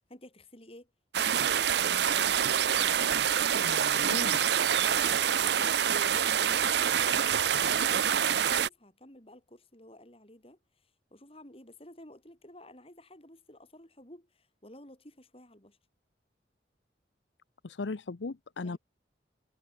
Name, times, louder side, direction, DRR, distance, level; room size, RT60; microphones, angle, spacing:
voice 1, 0.1-0.9 1.2-2.3 4.8-10.6 11.1-15.8 18.6-18.8, left 1 dB, 30° left, 5.0 m, -52 dB
sound 1, 1.1-8.7, right 8 dB, 65° right, 0.6 m, -26 dB
voice 2, 3.5-4.4 17.6-18.8, left 3 dB, 85° left, 0.7 m, -37 dB
head